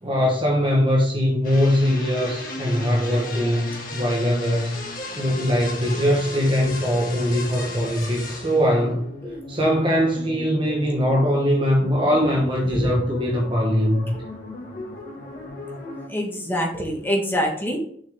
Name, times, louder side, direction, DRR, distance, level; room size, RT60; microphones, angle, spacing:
voice 1, 0.0-4.8 5.2-9.0 9.5-14.1, equal, 30° right, -1 dB, 1.1 m, -21 dB
sound 1, 1.4-16.1, left 2 dB, 50° left, 1.6 m, -36 dB
voice 2, 16.1-17.8, equal, 10° left, -1 dB, 1.6 m, -25 dB
6.4 x 5.6 x 3.4 m, 0.62 s
head